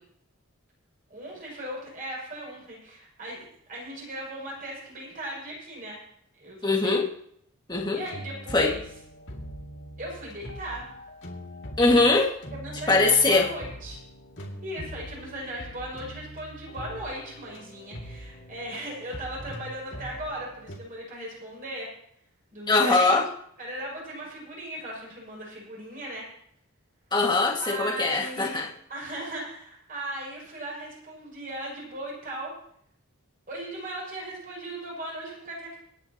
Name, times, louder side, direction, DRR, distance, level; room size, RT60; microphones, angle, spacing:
voice 1, 1.1-6.0 6.3-7.0 7.9-8.8 10.0-10.9 12.5-14.0 14.6-21.9 22.5-23.2 23.6-26.3 27.6-32.5 33.5-35.8, right 1 dB, 40° right, -4 dB, 6.5 m, -37 dB
voice 2, 6.6-7.1 7.7-8.0 8.5-8.7 11.8-12.3 12.9-13.5 22.7-23.2 27.1-28.7, left 3 dB, 20° left, -1 dB, 2.0 m, -21 dB
sound 1, 7.7-20.8, equal, 55° left, 2.4 m, -42 dB
26.0 x 9.7 x 3.0 m, 0.70 s
head